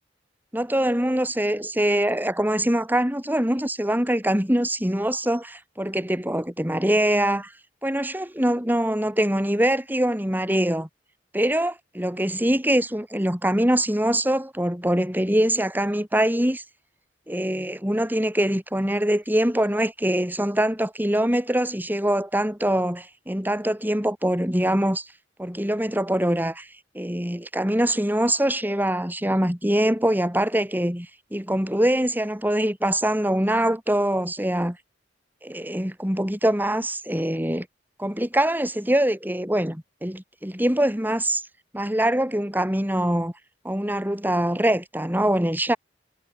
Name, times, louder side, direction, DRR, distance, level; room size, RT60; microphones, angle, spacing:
voice 1, 0.5-7.5 7.8-10.9 11.3-16.6 17.3-25.1 25.4-26.7 26.9-34.8 35.4-37.7 38.0-41.4 41.7-43.3 43.6-45.8, right 1 dB, 10° right, 4.5 m, -23 dB
head